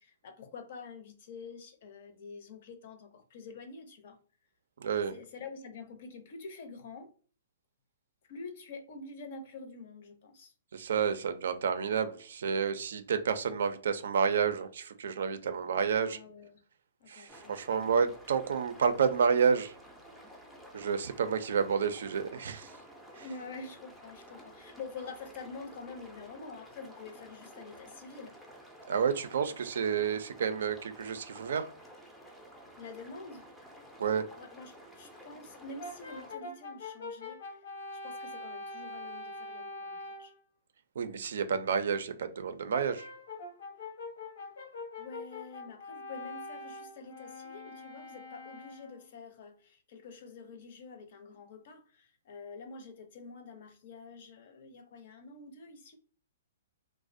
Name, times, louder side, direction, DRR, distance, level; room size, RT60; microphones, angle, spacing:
voice 1, 0.0-4.2 5.1-7.1 8.2-10.5 16.0-16.6 17.0-17.9 23.0-28.7 32.8-33.5 34.4-37.6 37.9-40.3 45.0-56.0, left 4 dB, 55° left, 0.6 m, -47 dB
voice 2, 4.8-5.2 10.7-16.2 17.1-19.7 20.7-22.7 23.2-23.4 28.9-31.7 34.0-34.3 41.0-43.1, right 6 dB, 75° right, 0.4 m, -30 dB
sound 1, 17.3-36.4, equal, ahead, 0.4 m, -52 dB
Brass instrument, 35.8-40.4 42.7-49.1, left 2 dB, 80° left, 0.8 m, -44 dB
2.4 x 2.0 x 2.5 m
hypercardioid pair, 150°, 0 cm